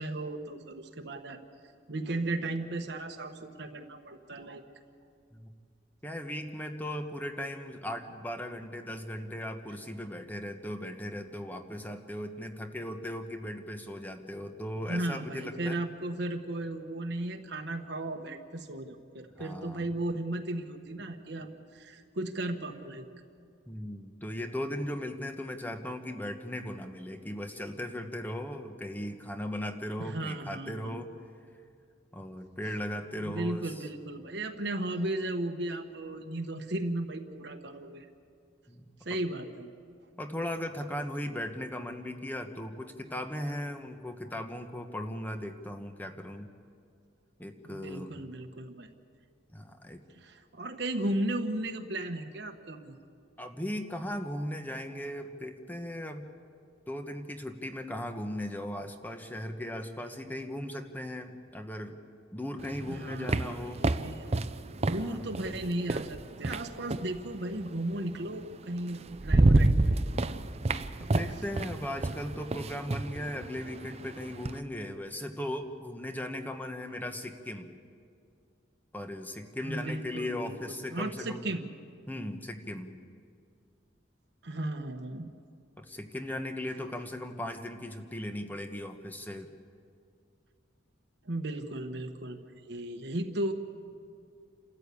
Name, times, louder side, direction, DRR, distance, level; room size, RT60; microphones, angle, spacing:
voice 1, 0.0-1.4 1.9-4.6 14.9-21.5 21.7-23.1 30.0-31.0 33.2-38.0 39.0-39.7 47.6-48.9 50.2-52.9 62.9-64.4 64.8-70.0 79.6-81.7 84.4-85.3 91.2-93.5, right 1 dB, 60° right, 4 dB, 1.2 m, -35 dB
voice 2, 6.0-15.8 19.4-19.9 23.7-31.1 32.1-33.9 38.7-38.8 39.1-39.2 40.2-46.5 47.4-48.1 49.5-50.0 53.4-56.2 56.9-62.0 62.3-63.9 64.9-65.2 71.0-77.7 78.9-81.5 82.1-82.9 85.8-89.5, left 1 dB, 10° left, 6 dB, 1.2 m, -38 dB
sound 1, 62.6-67.2 68.4-68.5 68.9-74.6, right 2 dB, 35° right, 0.6 m, -29 dB
28.5 x 14.0 x 8.4 m, 2.3 s
head